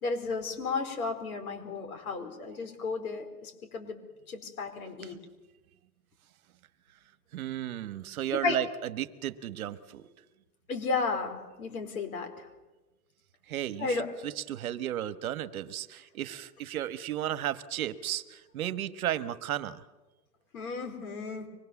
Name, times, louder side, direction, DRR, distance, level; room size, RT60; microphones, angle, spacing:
voice 1, 0.0-4.0 4.3-5.2 8.4-8.6 10.7-12.5 13.8-14.1 20.5-21.5, left 4 dB, 65° left, 6 dB, 4.7 m, -33 dB
voice 2, 7.3-10.1 13.5-19.8, right 12 dB, 65° right, 13 dB, 1.3 m, -34 dB
24.5 x 21.0 x 7.1 m, 1.1 s
supercardioid pair, 170°, 46 cm